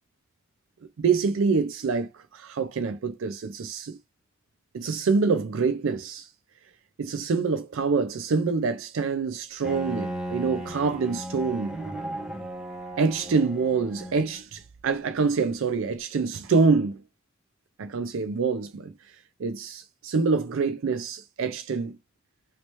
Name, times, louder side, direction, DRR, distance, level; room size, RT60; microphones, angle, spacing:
voice 1, 1.0-4.0 4.7-6.3 7.0-11.8 13.0-17.0 17.8-18.9 19.4-22.0, right 4 dB, 80° right, 0.4 m, -26 dB
Bowed string instrument, 9.6-14.4, right 1 dB, 5° right, 0.8 m, -36 dB
3.1 x 2.8 x 2.9 m
head